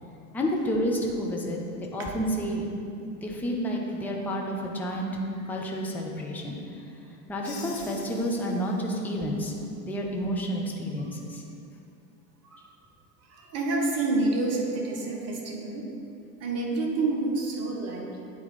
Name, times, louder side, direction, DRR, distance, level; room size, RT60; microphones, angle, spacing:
voice 1, 0.3-2.7 3.1-5.1 5.5-6.6 7.3-9.5 9.8-11.4, equal, 5° left, -1 dB, 0.4 m, -30 dB
voice 2, 5.4-6.0 11.0-11.2 12.4-12.7 13.2-15.9 16.4-18.3, right 2 dB, 30° right, 0 dB, 1.2 m, -29 dB
Crash cymbal, 7.4-9.2, left 4 dB, 55° left, 1.5 m, -46 dB
9.1 x 4.1 x 4.2 m, 2.6 s
figure-of-eight pair, 85°, 50 cm